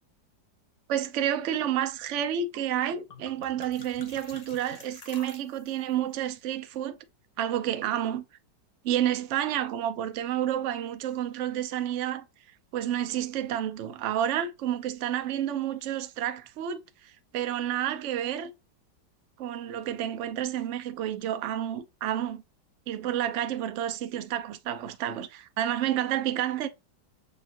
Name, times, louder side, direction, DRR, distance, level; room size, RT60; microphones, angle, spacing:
voice 1, 0.9-7.0 7.4-8.2 8.8-12.2 12.7-18.5 19.4-22.4 22.9-26.7, right 10 dB, 85° right, 0.6 m, -30 dB
sound 1, 2.5-2.6 2.9-5.9, left 4 dB, 60° left, 0.4 m, -48 dB
6.9 x 2.4 x 2.5 m
omnidirectional pair, 2.0 m